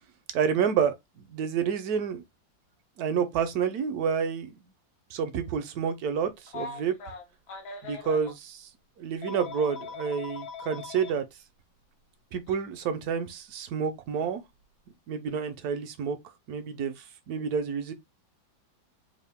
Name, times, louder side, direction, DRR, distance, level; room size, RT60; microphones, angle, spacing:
voice 1, 0.3-2.2 3.0-4.5 5.1-7.0 7.8-8.7 9.0-11.2 12.3-14.4 15.1-16.2 16.5-17.9, right 7 dB, 70° right, 0.9 m, -29 dB
Telephone, 6.5-8.4 9.2-11.1 12.5-12.6 14.1-14.3, left 5 dB, 85° left, 1.7 m, -40 dB
3.7 x 2.5 x 3.4 m
omnidirectional pair, 2.1 m